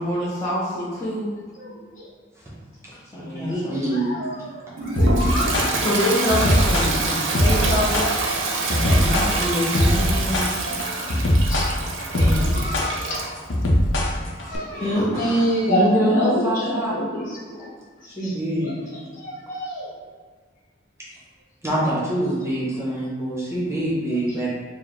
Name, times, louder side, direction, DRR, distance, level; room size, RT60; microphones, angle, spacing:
voice 1, 0.0-1.4 3.1-3.8 5.8-8.1 8.7-11.3 12.1-12.9 14.7-15.6, left 1 dB, 15° left, -10 dB, 0.7 m, -26 dB
voice 2, 1.6-2.1 3.9-5.8 6.8-7.1 7.5-7.6 9.2-9.6 11.1-11.2 11.5-12.0 12.5-13.3 14.4-17.7 18.2-18.3 18.6-18.7 19.2-19.9, equal, 45° left, -7 dB, 1.0 m, -28 dB
voice 3, 3.1-4.3 15.7-17.0 17.6-17.7 18.1-19.0 21.6-24.5, right 1 dB, 15° right, -8 dB, 0.9 m, -24 dB
Toilet flush, 4.8-13.3, right 3 dB, 80° right, 0.6 m, -26 dB
sound 1, 5.0-14.6, left 1 dB, 80° left, 0.6 m, -21 dB
4.5 x 2.0 x 3.2 m, 1.5 s
head